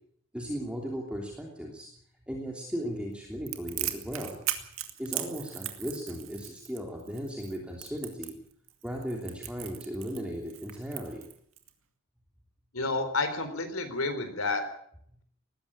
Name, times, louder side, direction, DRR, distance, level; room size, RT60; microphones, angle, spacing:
voice 1, 0.3-1.9 2.3-4.4 5.0-8.3 8.8-11.2, equal, 5° right, -1 dB, 3.1 m, -36 dB
Crackle, 3.5-11.7, right 12 dB, 70° right, 2.3 m, -38 dB
voice 2, 12.7-14.6, left 3 dB, 80° left, 9 dB, 4.1 m, -30 dB
19.5 x 15.5 x 8.8 m, 0.66 s
head